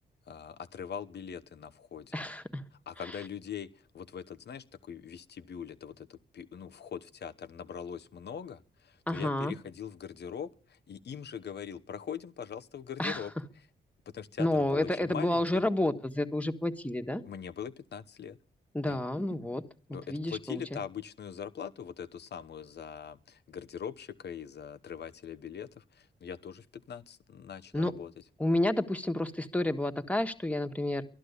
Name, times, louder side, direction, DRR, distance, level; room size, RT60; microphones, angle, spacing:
voice 1, 0.3-2.2 2.9-13.3 14.1-15.6 17.2-18.4 18.8-19.0 19.9-28.1, left 8 dB, 70° left, 13 dB, 1.0 m, -42 dB
voice 2, 2.1-2.6 9.1-9.5 13.0-13.2 14.4-17.2 18.7-19.6 20.1-20.8 27.7-27.9 28.4-31.0, left 1 dB, 5° left, 6 dB, 1.6 m, -30 dB
13.0 x 11.5 x 8.2 m, 0.43 s
cardioid pair, 60°, 18 cm